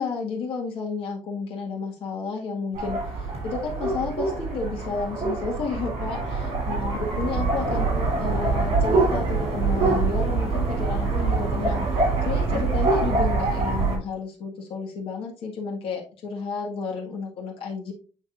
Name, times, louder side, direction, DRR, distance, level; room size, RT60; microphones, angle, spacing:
voice 1, 0.0-11.8 12.2-17.9, left 4 dB, 60° left, -1 dB, 1.7 m, -31 dB
sound 1, 2.7-14.0, right 3 dB, 85° right, 3.7 m, -25 dB
8.7 x 4.7 x 2.6 m, 0.38 s
cardioid pair, 170°, 10 cm